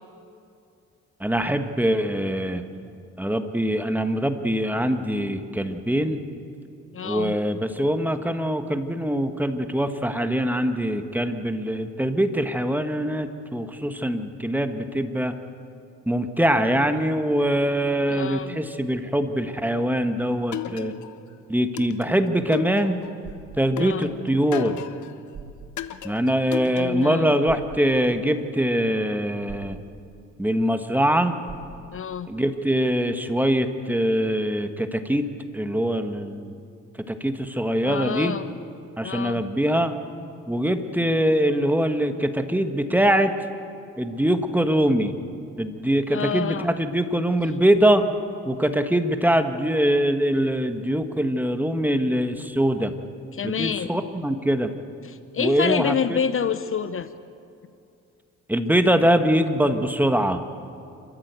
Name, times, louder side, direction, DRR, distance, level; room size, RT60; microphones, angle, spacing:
voice 1, 1.2-2.6 3.2-6.2 7.0-15.3 16.1-20.9 21.5-23.0 23.6-24.8 26.0-29.8 30.4-31.3 32.3-35.2 35.5-36.6 37.1-38.3 39.0-39.9 40.5-43.3 44.0-45.1 45.6-48.0 48.4-52.9 53.4-54.7 55.4-56.2 58.5-60.4, right 1 dB, 5° right, 8 dB, 1.5 m, -23 dB
voice 2, 6.9-7.3 18.1-18.6 23.7-24.1 26.7-27.4 31.9-32.3 37.8-38.5 39.0-39.4 46.1-46.7 53.3-53.9 55.0-57.1, left 7 dB, 45° left, 13 dB, 0.8 m, -28 dB
sound 1, 20.5-21.3 21.8-23.2 23.8-25.2 25.8-27.2, left 11 dB, 75° left, 1.0 m, -34 dB
sound 2, 23.2-23.6 24.9-25.0 25.3-25.7 27.4-27.8 29.5-29.8 31.5-31.8, right 6 dB, 50° right, 6.6 m, -41 dB
28.5 x 13.5 x 8.3 m, 2.5 s
cardioid pair, 90°, 30 cm